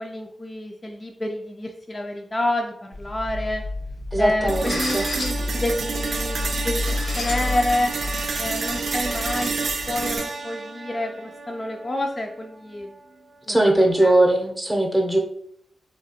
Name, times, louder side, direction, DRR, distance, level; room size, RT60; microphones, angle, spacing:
voice 1, 0.0-3.6 4.2-7.9 8.4-9.6 9.9-12.9 13.5-14.1, left 1 dB, 40° left, 2 dB, 0.4 m, -28 dB
sound 1, 2.9-10.2, left 2 dB, 85° left, 0.9 m, -30 dB
voice 2, 4.1-5.1 13.5-15.2, right 1 dB, 10° right, 1 dB, 0.7 m, -20 dB
sound 2, 4.5-12.5, right 4 dB, 70° right, 0.4 m, -29 dB
3.1 x 2.3 x 2.8 m, 0.67 s
cardioid pair, 45°, 0 cm